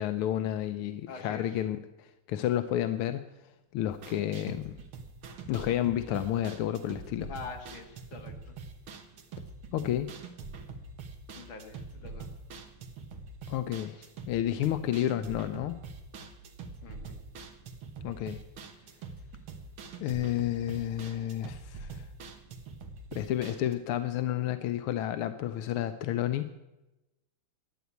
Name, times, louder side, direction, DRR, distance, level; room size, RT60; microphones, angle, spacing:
voice 1, 0.0-3.2 3.7-4.7 5.5-7.3 9.7-10.1 13.5-13.9 14.3-15.8 18.0-18.4 20.0-22.0 23.1-26.5, left 12 dB, 90° left, 10 dB, 1.5 m, -31 dB
voice 2, 1.1-1.6 7.3-8.5 11.3-12.3 13.9-14.1 16.8-17.2, left 4 dB, 70° left, 4 dB, 2.4 m, -45 dB
sound 1, 3.9-23.7, right 4 dB, 75° right, 2.2 m, -45 dB
12.5 x 9.3 x 8.2 m, 1.0 s
omnidirectional pair, 2.3 m